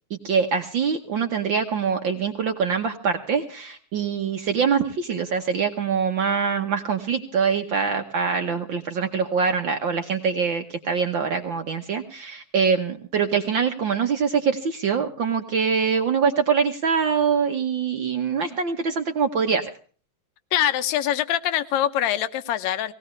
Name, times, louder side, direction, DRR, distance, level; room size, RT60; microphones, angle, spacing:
voice 1, 0.1-19.7, right 6 dB, 60° right, 6 dB, 1.2 m, -24 dB
voice 2, 20.5-22.9, left 11 dB, 70° left, 12 dB, 2.0 m, -24 dB
19.0 x 18.0 x 3.2 m, 0.40 s
omnidirectional pair, 3.6 m